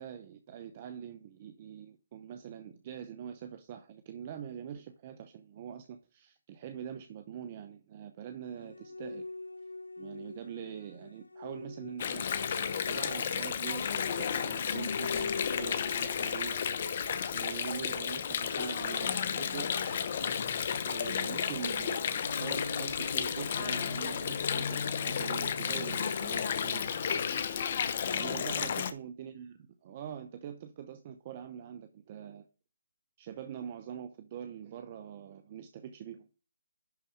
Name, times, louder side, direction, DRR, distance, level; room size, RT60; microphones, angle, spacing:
voice 1, 0.0-9.3 10.0-12.3 12.9-17.0 17.3-20.0 20.8-26.8 28.1-32.4 33.2-36.4, right 8 dB, 30° right, 8 dB, 0.7 m, -44 dB
sound 1, 8.5-14.3, left 2 dB, 85° left, 0.7 m, -46 dB
Water, 12.0-28.9, left 7 dB, 40° left, 0.8 m, -32 dB
Bass guitar, 22.2-28.5, left 2 dB, 60° left, 2.6 m, -47 dB
10.5 x 4.1 x 5.1 m, 0.35 s
figure-of-eight pair, 155°, 0 cm